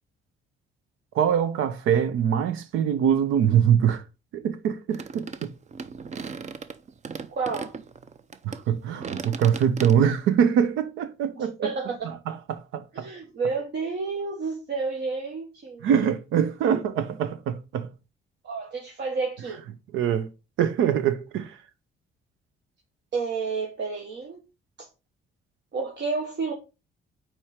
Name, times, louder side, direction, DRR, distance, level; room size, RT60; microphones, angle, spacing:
voice 1, 1.1-4.0 4.3-5.5 8.4-11.7 12.0-13.1 15.8-17.9 19.9-20.3 20.6-21.6, right 8 dB, 90° right, 0.7 m, -23 dB
sound 1, 4.9-8.6 9.0-9.9, right 5 dB, 35° right, 0.6 m, -37 dB
voice 2, 7.3-7.7 11.3-12.1 12.9-15.8 16.7-16.8 18.4-19.6 23.1-24.4 24.8-24.9 25.7-26.5, right 4 dB, 60° right, 1.3 m, -30 dB
4.5 x 4.4 x 4.9 m
cardioid pair, 90°, 20 cm